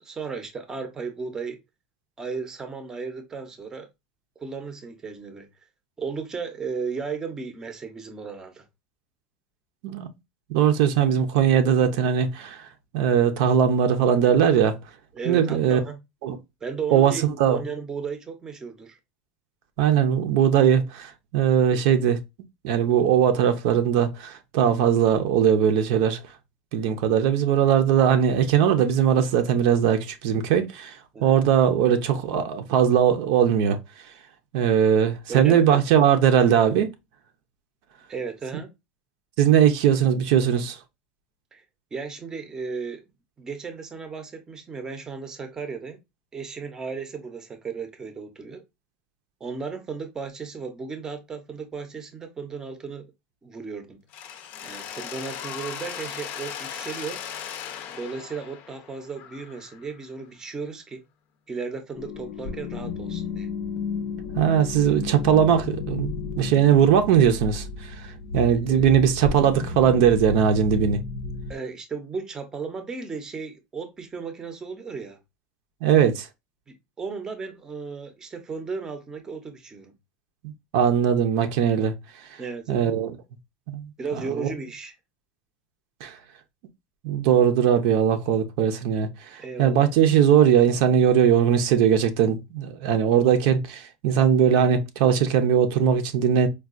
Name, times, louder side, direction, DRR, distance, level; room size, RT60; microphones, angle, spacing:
voice 1, 0.0-1.6 2.2-3.9 4.4-5.5 6.0-8.6 15.1-16.0 16.6-19.0 31.1-31.5 35.3-35.8 38.1-38.7 41.5-41.6 41.9-43.0 43.4-46.0 46.3-48.6 49.4-53.0 53.4-54.0 54.6-57.2 57.9-61.0 61.5-63.5 68.5-69.0 71.5-75.2 76.7-79.9 82.4-82.9 84.0-84.9 89.4-89.9, right 5 dB, 15° right, 0.6 m, -35 dB
voice 2, 10.5-12.6 12.9-14.8 15.2-15.8 16.2-16.4 16.9-17.1 17.4-17.6 19.8-22.2 22.6-26.2 26.7-30.9 31.2-33.8 34.5-36.9 39.4-40.8 64.4-67.9 68.3-71.0 75.8-76.3 80.7-81.9 82.7-83.1 83.7-83.9 84.4-84.5 86.0-86.2 87.0-96.5, right 8 dB, 65° right, 0.6 m, -20 dB
Mechanisms, 54.1-60.0, left 9 dB, 45° left, 0.5 m, -37 dB
sound 1, 61.9-71.5, left 4 dB, 90° left, 0.7 m, -33 dB
4.5 x 2.3 x 2.3 m
supercardioid pair, 150°, 4 cm